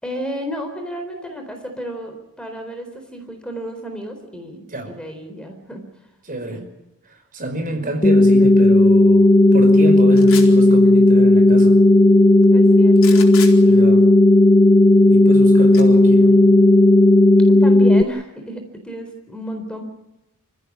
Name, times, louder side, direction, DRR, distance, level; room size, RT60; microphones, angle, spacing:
voice 1, 0.0-5.9 6.5-6.7 7.7-8.0 12.5-13.3 13.6-14.0 17.6-19.8, equal, 5° left, 5 dB, 4.0 m, -33 dB
voice 2, 6.2-6.6 7.0-11.8 13.7-14.0 15.1-16.4, right 1 dB, 40° right, 5 dB, 5.2 m, -29 dB
sound 1, 8.0-18.0, left 1 dB, 25° left, 0.9 m, -12 dB
sound 2, 10.2-10.6 13.0-13.5 15.7-15.8, left 8 dB, 65° left, 4.4 m, -31 dB
28.0 x 16.0 x 8.6 m, 0.97 s
head